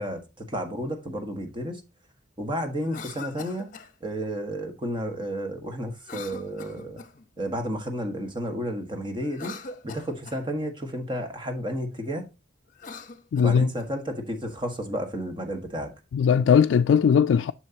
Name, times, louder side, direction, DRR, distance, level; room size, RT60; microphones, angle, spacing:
voice 1, 0.0-1.8 2.4-3.7 4.0-7.0 7.4-9.5 9.8-12.2 13.4-15.9, equal, 25° right, 1.4 m, -32 dB
Cough, 2.8-3.9 6.0-7.3 9.2-10.4 12.7-13.9, left 4 dB, 45° left, 0.9 m, -42 dB
voice 2, 13.3-13.7 16.1-17.5, left 7 dB, 85° left, 0.3 m, -19 dB
7.5 x 6.4 x 2.8 m
head